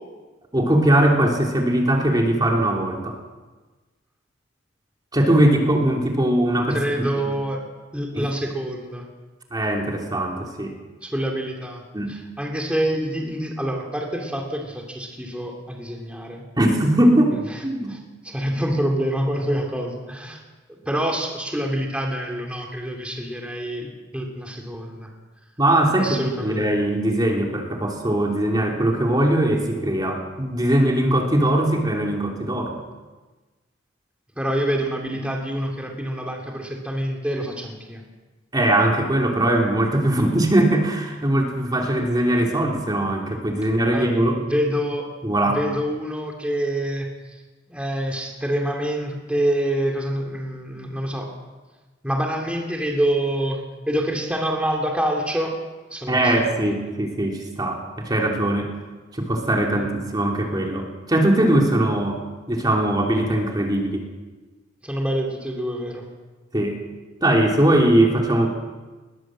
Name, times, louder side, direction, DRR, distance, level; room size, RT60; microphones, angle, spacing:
voice 1, 0.5-3.2 5.1-7.4 8.2-8.3 9.5-10.8 11.9-12.1 16.6-18.0 25.6-32.8 38.5-44.4 45.2-45.6 56.1-58.7 59.1-62.2 62.5-64.1 66.5-66.8 67.2-68.5, right 1 dB, 20° right, 1 dB, 2.9 m, -20 dB
voice 2, 6.7-7.6 7.9-9.1 11.0-11.8 12.1-16.4 17.3-17.6 17.9-18.0 18.2-20.4 20.8-25.1 26.0-26.7 34.4-38.0 43.9-44.1 44.4-45.0 45.4-47.4 47.7-51.3 52.0-55.5 55.9-56.7 59.7-59.9 64.8-66.0, right 1 dB, 5° right, 1 dB, 2.8 m, -26 dB
21.0 x 19.0 x 7.6 m, 1.3 s
head